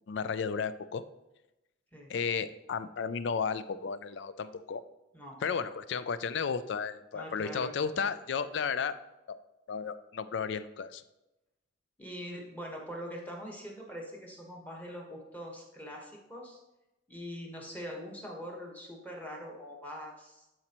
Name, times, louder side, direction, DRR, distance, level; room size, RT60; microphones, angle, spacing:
voice 1, 0.1-1.0 2.1-4.8 5.4-9.0 9.3-9.4 9.7-11.0, left 6 dB, 60° left, 14 dB, 0.4 m, -33 dB
voice 2, 7.1-7.7 12.0-16.6 17.1-20.4, equal, 10° left, -1 dB, 1.3 m, -43 dB
11.5 x 4.3 x 3.0 m, 0.96 s
head